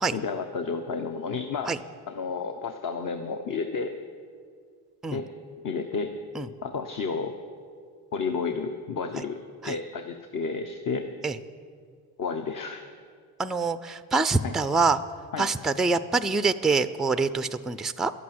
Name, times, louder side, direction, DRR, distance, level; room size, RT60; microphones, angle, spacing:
voice 1, 0.1-1.7 2.1-4.0 5.1-5.3 5.6-6.1 6.6-7.3 8.1-9.4 9.6-11.1 12.2-12.8 14.4-14.5 15.3-15.5, left 5 dB, 45° left, 5 dB, 1.0 m, -31 dB
voice 2, 13.4-15.0 15.4-18.1, right 4 dB, ahead, 12 dB, 0.4 m, -25 dB
11.5 x 8.5 x 9.3 m, 2.1 s
supercardioid pair, 80°, 44 cm